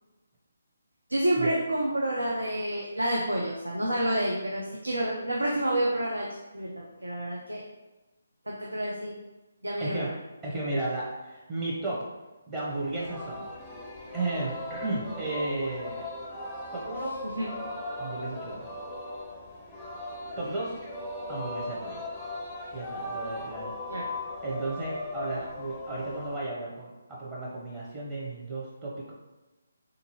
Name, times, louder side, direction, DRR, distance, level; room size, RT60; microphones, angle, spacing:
voice 1, 1.1-6.3 6.5-7.6 8.5-9.2 9.6-10.0 17.2-17.7 23.9-24.0, right 1 dB, 85° right, -3 dB, 0.5 m, -29 dB
voice 2, 9.8-10.1 10.4-12.0 12.5-13.5 14.1-16.1 16.7-17.1 18.0-18.7 20.4-20.7 21.3-22.0 22.7-23.7 24.4-29.1, right 2 dB, 20° right, -8 dB, 0.7 m, -34 dB
Singing, 12.7-26.4, left 2 dB, 10° left, 0.4 m, -38 dB
3.6 x 2.6 x 2.9 m, 1.1 s
figure-of-eight pair, 145°, 0 cm